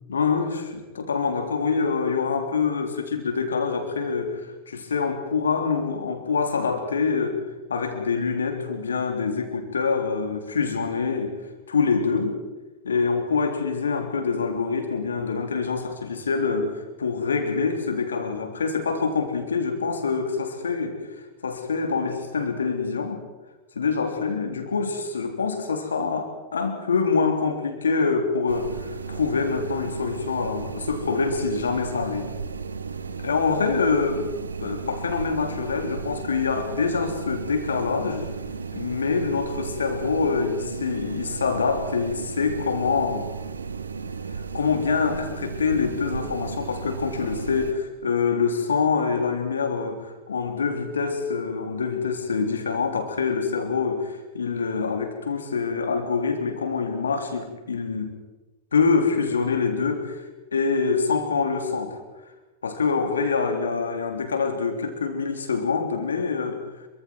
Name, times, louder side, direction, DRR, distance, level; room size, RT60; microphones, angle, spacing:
voice 1, 0.1-7.4 7.7-11.3 11.7-12.4 12.8-21.0 21.4-23.2 23.7-32.3 33.2-38.3 38.7-43.2 44.3-58.1 58.7-62.0 62.6-66.6, left 5 dB, 70° left, 5 dB, 3.5 m, -25 dB
sound 1, 28.5-47.7, right 5 dB, 75° right, 1.4 m, -34 dB
27.0 x 24.5 x 4.6 m, 1.2 s
figure-of-eight pair, 90°, 0 cm